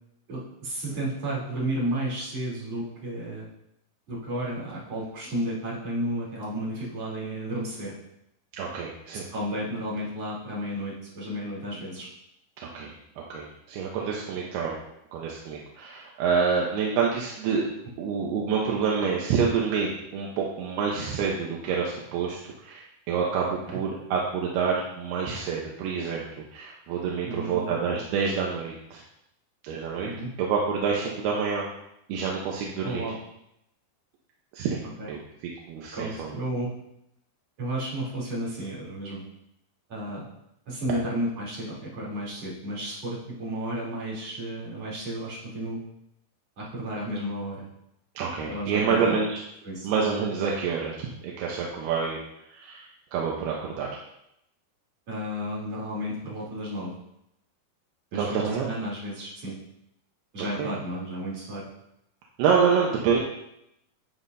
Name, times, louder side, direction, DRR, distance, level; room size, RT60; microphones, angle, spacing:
voice 1, 0.3-3.5 4.1-8.0 9.3-12.1 23.7-23.8 27.3-28.0 30.0-30.3 32.8-33.2 35.0-35.1 35.9-36.7 37.6-39.2 39.9-40.3 40.7-45.8 46.6-47.7 48.5-49.2 49.6-49.9 55.1-56.9 58.1-59.6 60.3-61.7, right 1 dB, 40° right, -7 dB, 4.2 m, -32 dB
voice 2, 8.5-9.3 12.7-12.9 13.3-14.8 15.1-17.6 18.0-29.0 29.6-30.1 30.4-31.7 32.1-33.1 34.5-35.2 35.7-36.3 48.2-49.4 49.8-52.2 52.5-53.9 58.1-58.7 60.4-60.7 62.4-63.2, right 6 dB, 85° right, -2 dB, 3.0 m, -27 dB
10.0 x 9.5 x 2.7 m, 0.82 s
omnidirectional pair, 4.5 m